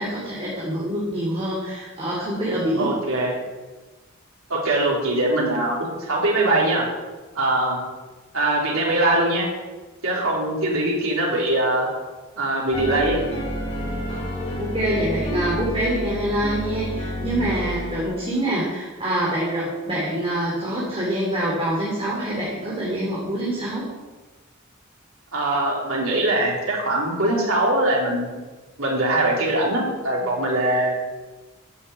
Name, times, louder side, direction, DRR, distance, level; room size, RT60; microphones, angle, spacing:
voice 1, 0.0-2.9 14.6-23.8, right 1 dB, 30° right, -6 dB, 3.0 m, -25 dB
voice 2, 2.8-3.3 4.5-6.9 7.3-7.8 8.3-9.5 10.0-11.9 12.4-13.2 25.3-28.3 28.8-30.9, right 1 dB, 80° right, -4 dB, 3.6 m, -22 dB
sound 1, 12.7-18.1, equal, 35° left, 4.0 m, -29 dB
10.0 x 7.5 x 8.1 m, 1.2 s
head